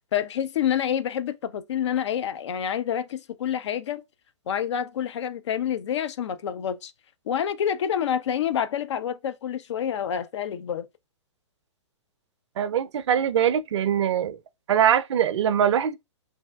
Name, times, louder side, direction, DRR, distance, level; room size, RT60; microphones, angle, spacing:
voice 1, 0.1-4.0 4.5-6.9 7.3-10.9, left 9 dB, 65° left, 0.4 m, -28 dB
voice 2, 12.6-14.4 14.7-16.0, right 9 dB, 65° right, 0.4 m, -22 dB
3.3 x 2.6 x 2.3 m
hypercardioid pair, 130°, 16 cm